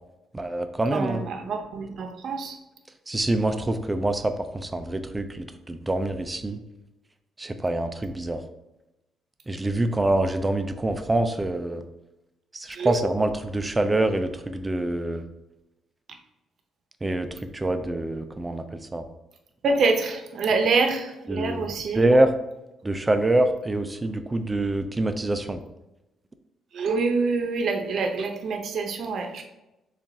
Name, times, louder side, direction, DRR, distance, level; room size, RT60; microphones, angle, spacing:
voice 1, 0.3-1.2 3.1-6.6 7.4-8.4 9.5-11.8 12.5-15.3 17.0-19.0 21.3-22.3 22.8-25.6, right 1 dB, 20° right, 8 dB, 0.4 m, -25 dB
voice 2, 0.9-2.6 12.7-13.0 19.6-22.0 26.7-29.4, right 4 dB, 60° right, 4 dB, 0.7 m, -26 dB
6.9 x 2.5 x 2.7 m, 0.95 s
cardioid pair, 90°, 0 cm